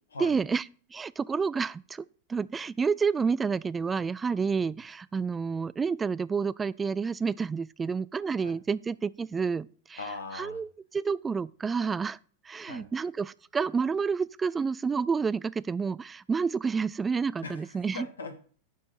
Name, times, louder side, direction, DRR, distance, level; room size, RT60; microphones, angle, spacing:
voice 1, 0.2-0.6 0.9-2.0 2.3-10.0 10.3-12.2 12.5-18.1, right 5 dB, 15° right, 0.3 m, -29 dB
voice 2, 10.0-10.6 12.6-12.8 17.4-18.5, left 3 dB, 70° left, 1.7 m, -40 dB
11.0 x 7.2 x 4.4 m
figure-of-eight pair, 90°, 0 cm